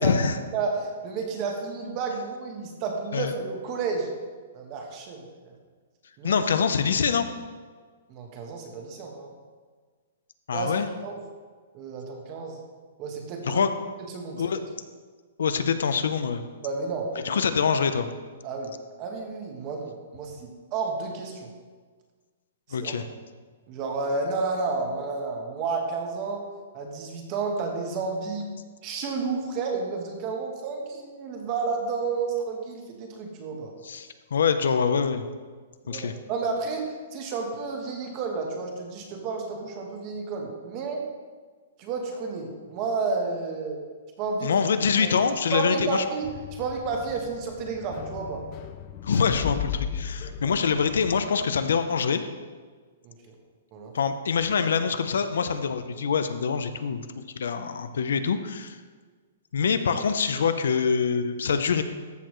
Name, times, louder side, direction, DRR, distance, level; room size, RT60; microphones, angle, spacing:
voice 1, 0.0-0.4 3.1-3.3 6.2-7.3 10.5-10.9 13.4-13.7 14.4-14.6 15.4-16.4 17.2-18.1 22.7-23.0 33.8-35.2 35.9-36.1 44.4-46.0 49.0-52.2 53.9-57.1 57.4-58.8 59.5-61.8, left 6 dB, 75° left, 10 dB, 0.7 m, -25 dB
voice 2, 0.5-4.1 4.5-5.5 6.2-6.5 8.1-9.3 10.5-10.7 11.0-11.2 11.7-12.6 13.0-13.7 14.1-14.5 16.6-17.4 18.4-21.5 22.8-22.9 23.7-28.5 28.8-33.7 35.8-41.0 41.8-43.8 44.2-44.5 45.0-45.1 45.5-48.4 50.4-50.6 53.0-53.4 53.7-53.9, right 4 dB, 25° right, 2 dB, 1.2 m, -31 dB
sound 1, 46.2-51.2, left 8 dB, 25° left, 0.3 m, -36 dB
14.0 x 6.7 x 3.2 m, 1.5 s
hypercardioid pair, 175°, 0 cm